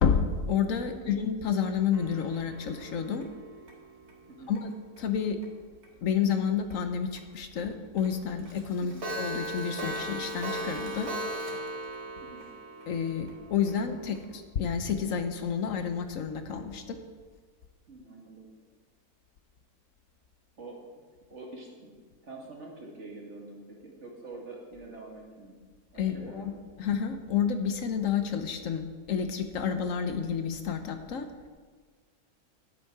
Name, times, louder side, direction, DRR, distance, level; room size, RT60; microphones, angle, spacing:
voice 1, 0.0-3.2 4.5-5.4 6.0-11.1 12.9-17.0 26.0-26.5 26.8-31.3, left 7 dB, 65° left, 7 dB, 1.1 m, -30 dB
Clock, 1.9-5.0 5.4-5.5 5.8-5.9 6.3-6.4 6.7-6.8 7.2-7.3 7.6-7.7 8.0-8.1 8.4-14.2, right 1 dB, 70° right, 2.2 m, -38 dB
voice 2, 17.9-18.5 20.6-20.8 21.3-21.9 22.2-25.6 25.9-26.6, right 2 dB, 50° right, -2 dB, 2.1 m, -46 dB
11.0 x 8.2 x 4.8 m, 1.5 s
omnidirectional pair, 1.6 m